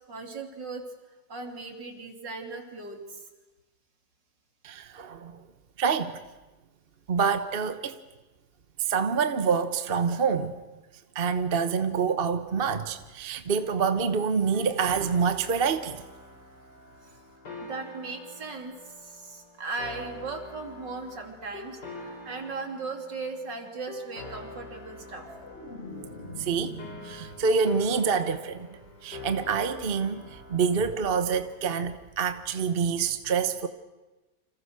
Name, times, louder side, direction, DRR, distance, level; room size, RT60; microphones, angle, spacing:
voice 1, 0.1-0.9 1.3-3.2 17.0-17.2 17.6-25.3, right 3 dB, 70° right, 3.8 m, -38 dB
voice 2, 4.6-5.4 5.8-6.2 7.1-8.0 8.8-10.5 11.1-16.0 26.4-26.8 27.0-28.7 29.0-33.7, right 6 dB, 35° right, 1.1 m, -26 dB
sound 1, 13.6-31.5, left 2 dB, 65° left, 4.5 m, -46 dB
sound 2, 24.7-27.8 28.2-28.5, left 2 dB, 35° left, 5.1 m, -44 dB
29.0 x 26.5 x 6.6 m
omnidirectional pair, 2.0 m